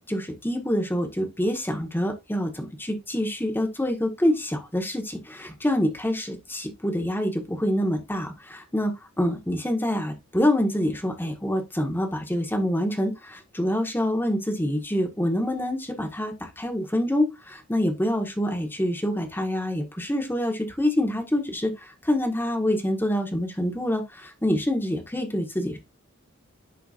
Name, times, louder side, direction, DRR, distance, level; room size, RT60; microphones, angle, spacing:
voice 1, 0.0-25.8, left 1 dB, 10° left, 1.4 m, -26 dB
10.5 x 4.6 x 2.5 m
head